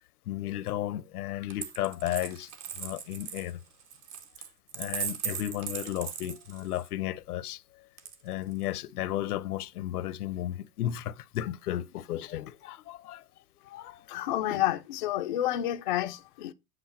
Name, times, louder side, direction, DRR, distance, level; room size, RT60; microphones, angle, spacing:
voice 1, 0.3-2.5 2.8-3.6 4.7-7.6 8.2-13.2 13.7-14.0, left 13 dB, 65° left, 0.7 m, -34 dB
Coin (dropping), 1.5-6.9 8.0-8.7, right 8 dB, 20° right, 0.5 m, -38 dB
voice 2, 14.1-16.5, left 13 dB, 35° left, 0.4 m, -29 dB
7.9 x 5.3 x 4.3 m
hypercardioid pair, 140°, 48 cm